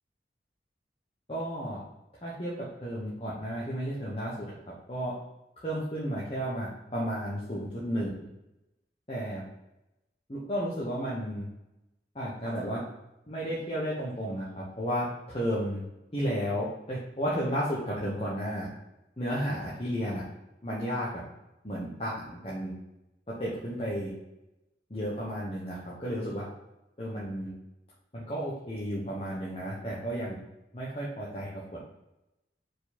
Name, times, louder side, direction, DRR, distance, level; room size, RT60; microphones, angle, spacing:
voice 1, 1.3-1.8 2.2-2.5 2.8-4.5 4.9-5.1 5.6-8.1 9.1-9.5 10.3-11.5 12.1-12.8 13.3-15.8 16.1-18.7 19.2-20.2 20.6-21.2 21.6-22.7 23.3-24.1 24.9-26.5 27.0-27.5 28.1-30.4 30.7-31.6, equal, 30° left, -7 dB, 1.2 m, -33 dB
4.8 x 4.8 x 4.2 m, 0.92 s
head